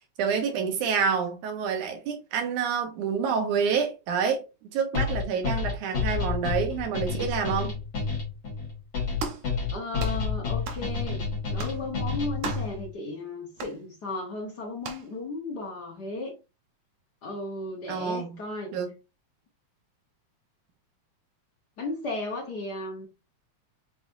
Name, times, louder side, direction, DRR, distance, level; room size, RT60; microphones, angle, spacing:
voice 1, 0.2-4.4 4.7-7.7 17.9-18.4 18.7-18.9, right 6 dB, 85° right, 2.5 m, -28 dB
sound 1, 4.9-12.9, left 5 dB, 40° left, 2.7 m, -29 dB
sound 2, 9.2-9.5 10.0-10.2 10.7-10.9 11.6-11.8 12.4-12.7 13.6-13.8 14.8-15.1, right 5 dB, 70° right, 1.4 m, -36 dB
voice 2, 9.7-16.3 17.2-18.7 21.8-23.1, left 2 dB, 60° left, 1.1 m, -35 dB
6.0 x 3.4 x 2.6 m
omnidirectional pair, 3.4 m